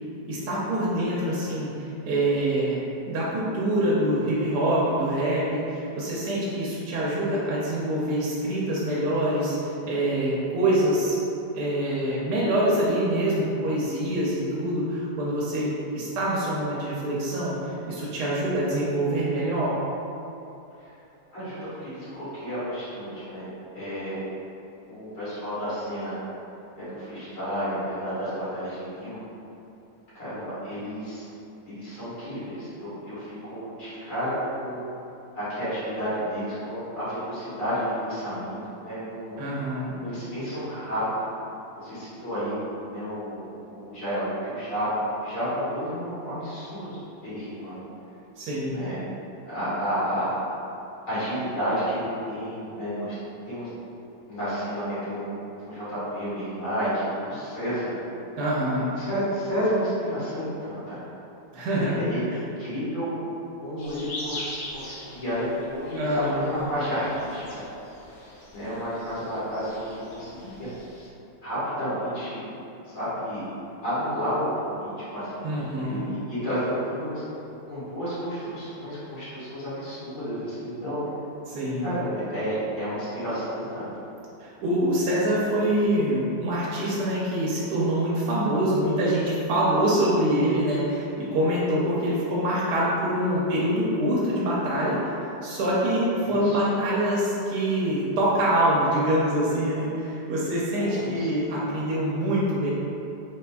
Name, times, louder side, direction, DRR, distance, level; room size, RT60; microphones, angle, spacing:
voice 1, 0.3-2.8 3.1-11.2 11.5-19.7 39.4-40.0 48.4-48.8 58.4-58.9 61.5-62.0 66.0-66.5 75.4-76.0 81.5-81.9 84.4-102.7, right 1 dB, 80° right, -7 dB, 1.2 m, -25 dB
voice 2, 21.3-23.5 23.7-24.2 24.9-26.1 26.7-29.2 30.1-31.2 31.7-34.8 35.3-39.4 40.0-41.3 41.8-42.6 42.9-47.9 48.7-49.0 49.4-50.3 51.1-53.1 53.5-53.7 54.3-58.0 59.0-61.0 61.8-62.3 62.6-63.1 63.6-67.6 68.5-70.7 71.4-72.5 72.8-73.4 73.8-77.2 77.7-81.0 81.8-83.9 96.2-96.6 100.8-101.3, equal, 55° left, -14 dB, 2.1 m, -31 dB
sound 1, 63.8-71.1, left 1 dB, 75° left, 1.2 m, -42 dB
4.0 x 3.2 x 2.2 m, 2.8 s
omnidirectional pair, 1.7 m